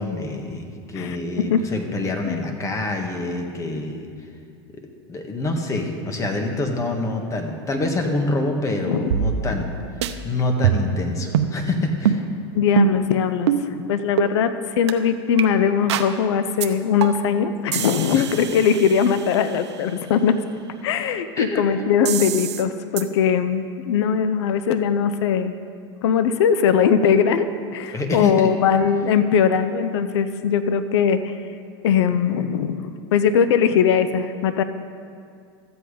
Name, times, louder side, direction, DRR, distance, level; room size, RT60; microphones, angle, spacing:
voice 1, 0.0-4.1 5.1-9.7 10.2-12.2 18.1-18.3 21.4-21.6 27.9-28.5, left 2 dB, 20° left, 3 dB, 1.5 m, -26 dB
voice 2, 0.9-1.6 2.3-2.4 8.9-9.1 12.5-20.4 20.8-25.6 26.0-27.5 27.7-31.3 31.8-34.6, left 7 dB, 80° left, 11 dB, 0.6 m, -20 dB
sound 1, 9.1-9.7 10.0-10.1 10.6-11.0 11.3-11.5 12.1-12.2 12.8-13.1 13.5-13.6 14.2-14.3 14.9-15.0 15.4-15.5 15.9-16.1 16.6-16.7 17.0-17.3 17.7-19.6 22.1-22.6 23.0-23.1, right 9 dB, 85° right, 0.7 m, -23 dB
13.5 x 7.9 x 5.0 m, 2.3 s
supercardioid pair, 125°, 14 cm